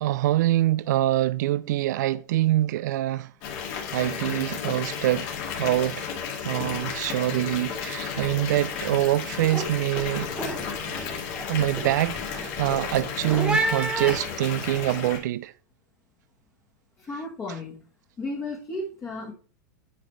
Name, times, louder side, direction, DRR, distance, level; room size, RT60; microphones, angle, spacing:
voice 1, 0.0-3.3 3.9-5.3 5.6-6.0 6.4-10.3 11.5-15.5, right 14 dB, 70° right, 0.4 m, -25 dB
Water tap faucet / Bathtub (filling or washing) / Fill (with liquid), 3.4-15.2, left 7 dB, 45° left, 2.2 m, -33 dB
sound 1, 7.7-7.9 8.2-8.6 9.0-14.9, right 2 dB, 10° right, 0.9 m, -32 dB
voice 2, 17.0-17.9 18.2-19.3, left 2 dB, 20° left, 1.6 m, -34 dB
10.0 x 5.0 x 3.2 m
supercardioid pair, 135°, 10 cm